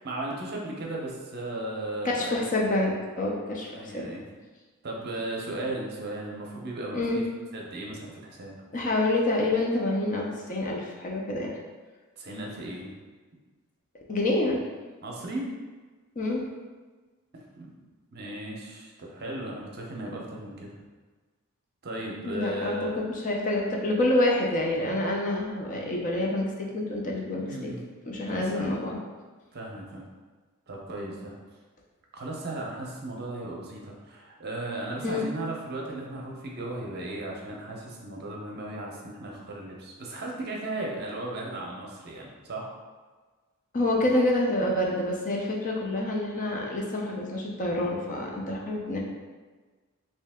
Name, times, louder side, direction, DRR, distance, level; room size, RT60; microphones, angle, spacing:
voice 1, 0.0-2.4 3.7-4.2 4.8-7.2 7.5-8.6 12.2-13.0 15.0-15.5 17.3-17.7 18.1-20.7 21.8-23.0 27.4-27.8 28.1-28.7 29.5-30.1 30.7-31.3 32.1-42.6, right 1 dB, 45° right, -2 dB, 0.6 m, -36 dB
voice 2, 2.0-4.0 6.9-7.2 8.7-11.5 14.1-14.6 16.2-16.4 22.2-27.7 28.1-29.0 35.0-35.3 43.7-49.0, left 1 dB, 35° left, -1 dB, 0.5 m, -27 dB
3.1 x 2.7 x 3.5 m, 1.4 s
head